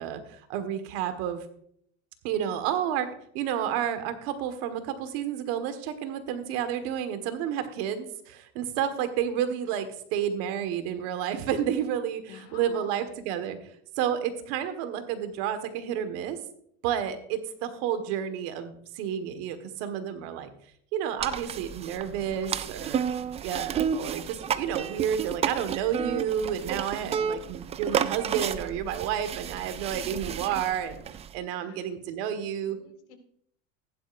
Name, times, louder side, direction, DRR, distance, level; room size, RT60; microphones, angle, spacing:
voice 1, 0.0-1.4 2.2-3.1 3.3-13.6 14.0-16.4 16.8-20.5 20.9-23.0 23.4-31.0 31.3-32.8, right 9 dB, 70° right, 9 dB, 1.7 m, -30 dB
voice 2, 12.2-13.1 14.5-14.7 15.0-15.2 31.6-31.9 32.2-32.3 32.6-33.2, left 8 dB, 90° left, 6 dB, 2.1 m, -50 dB
sound 1, 21.2-31.3, right 8 dB, 20° right, 0.3 m, -32 dB
15.5 x 11.5 x 2.6 m, 0.66 s
cardioid pair, 140°, 34 cm